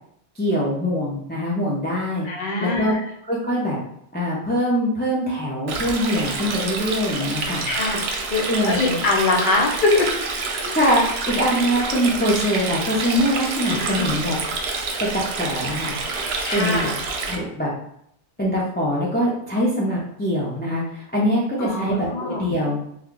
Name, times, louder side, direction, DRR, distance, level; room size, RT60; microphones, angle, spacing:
voice 1, 0.4-2.3 2.6-2.9 3.3-3.8 4.1-7.7 8.5-9.0 10.7-14.3 15.0-16.0 16.5-16.9 17.2-17.7 18.4-22.8, equal, 15° left, -5 dB, 0.4 m, -23 dB
voice 2, 2.2-3.0 7.6-10.1 13.6-14.1 16.5-16.9 21.6-22.5, left 3 dB, 50° left, -1 dB, 0.8 m, -23 dB
Stream, 5.7-17.4, right 4 dB, 70° right, 0.8 m, -28 dB
3.1 x 2.3 x 3.7 m, 0.71 s
omnidirectional pair, 1.2 m